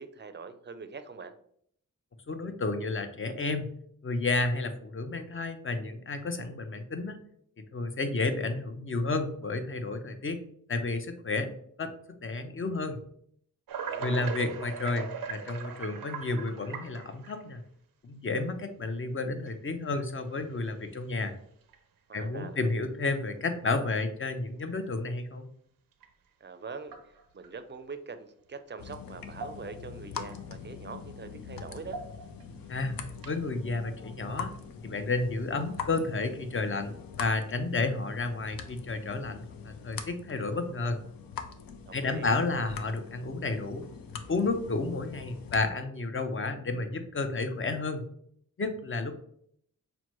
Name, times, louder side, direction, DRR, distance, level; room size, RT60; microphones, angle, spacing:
voice 1, 0.0-1.3 13.9-14.3 22.1-22.8 26.4-32.0 41.9-42.3, right 4 dB, 35° right, 9 dB, 0.5 m, -43 dB
voice 2, 2.3-3.7 4.0-7.2 7.7-10.4 10.7-11.5 11.8-11.9 12.2-13.0 14.0-17.6 18.0-21.3 22.1-25.4 32.7-33.0 33.3-34.5 34.8-36.9 37.2-41.0 41.9-43.9 44.3-48.1 48.6-49.2, left 3 dB, 35° left, 8 dB, 0.6 m, -31 dB
sound 1, 13.7-17.5 18.3-18.4 19.5-19.6 20.3-20.6 21.0-21.1 21.6-21.8 23.1-23.2 26.0-26.1 26.8-27.5 28.9-29.0 29.3-29.9 30.3-30.4 31.7-32.4 33.1-33.5, right 6 dB, 90° right, 0.5 m, -40 dB
sound 2, 28.8-45.7, left 6 dB, 80° left, 0.5 m, -43 dB
5.9 x 2.1 x 3.0 m, 0.66 s
cardioid pair, 65°, 34 cm